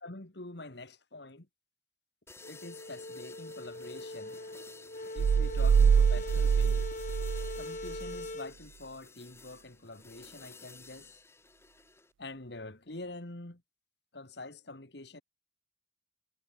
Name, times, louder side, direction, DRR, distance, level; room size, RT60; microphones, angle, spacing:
voice 1, 0.0-1.5 2.5-4.4 5.1-6.9 7.6-11.2 12.2-13.6 14.1-15.2, left 2 dB, 60° left, 1.9 m, -46 dB
sound 1, 2.3-12.1, left 3 dB, 15° left, 7.4 m, -53 dB
sound 2, 2.4-8.5, left 2 dB, 40° left, 1.8 m, -41 dB
sound 3, 5.2-8.2, right 6 dB, 80° right, 0.3 m, -25 dB
head